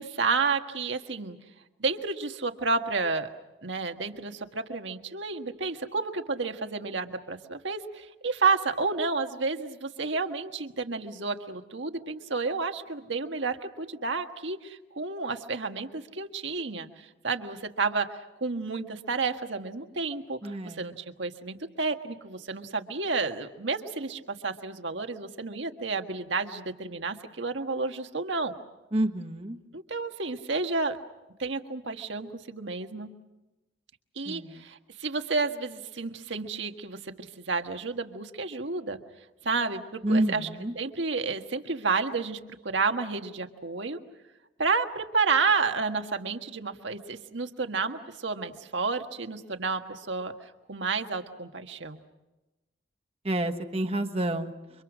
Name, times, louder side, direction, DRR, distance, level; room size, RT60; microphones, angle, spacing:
voice 1, 0.0-1.4 1.8-3.3 3.6-28.5 29.7-31.0 31.4-33.1 34.1-39.0 39.4-40.5 40.7-44.0 44.6-52.0, right 4 dB, 75° right, 6 dB, 1.6 m, -31 dB
voice 2, 20.4-20.8 28.9-29.6 34.3-34.6 40.0-40.7 53.2-54.5, right 1 dB, 30° right, 4 dB, 1.3 m, -28 dB
29.5 x 25.0 x 6.2 m, 1.0 s
head